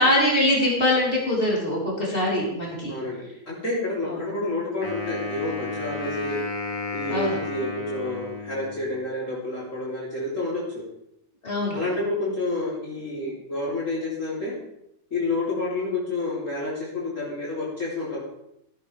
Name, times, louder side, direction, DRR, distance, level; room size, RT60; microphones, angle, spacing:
voice 1, 0.0-2.9 4.1-4.2 7.1-7.4 11.4-11.8, left 1 dB, 35° left, -5 dB, 4.2 m, -23 dB
voice 2, 2.9-6.4 6.9-10.8 11.7-14.5 15.1-18.2, left 2 dB, 55° left, -6 dB, 3.8 m, -29 dB
Wind instrument woodwind instrument, 4.8-9.1, left 3 dB, 85° left, 2.4 m, -33 dB
16.5 x 11.0 x 3.4 m, 0.79 s
omnidirectional pair, 1.6 m